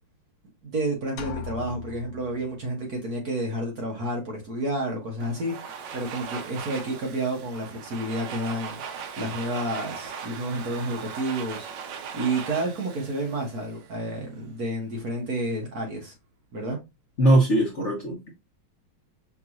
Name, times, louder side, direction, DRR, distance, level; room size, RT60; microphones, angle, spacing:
voice 1, 0.6-16.1 16.5-16.8, right 1 dB, 50° right, 1.3 m, -30 dB
sound 1, 1.2-3.0, left 8 dB, 85° left, 0.8 m, -39 dB
Domestic sounds home sounds, 5.2-14.1, right 6 dB, 75° right, 1.2 m, -39 dB
voice 2, 17.2-18.3, right 1 dB, 40° left, 1.1 m, -20 dB
5.7 x 3.0 x 2.6 m
omnidirectional pair, 2.4 m